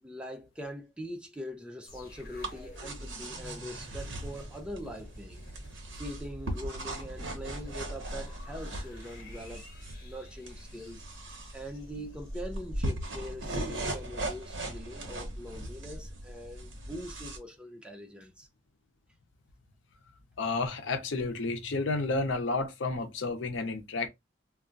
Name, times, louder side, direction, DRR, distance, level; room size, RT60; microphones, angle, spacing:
voice 1, 0.0-5.5 6.0-9.6 10.0-11.0 11.5-18.5, equal, 5° right, 0.4 m, -42 dB
sound 1, 1.8-13.0 13.3-13.5, equal, 50° left, 1.1 m, -51 dB
sound 2, 1.9-17.4, right 1 dB, 75° right, 0.9 m, -39 dB
voice 2, 20.4-24.1, left 3 dB, 80° left, 0.6 m, -31 dB
2.3 x 2.2 x 3.8 m
head